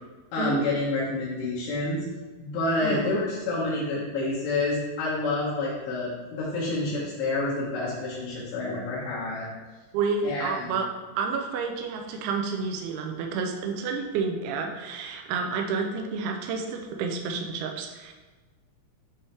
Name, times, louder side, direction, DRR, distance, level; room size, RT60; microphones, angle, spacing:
voice 1, 0.3-2.0 2.4-9.5 10.2-10.7, left 2 dB, 75° left, -8 dB, 3.2 m, -28 dB
voice 2, 2.8-3.1 9.9-10.9 11.2-18.1, right 5 dB, 85° right, 3 dB, 2.3 m, -30 dB
9.6 x 3.5 x 3.2 m, 1.3 s
omnidirectional pair, 5.3 m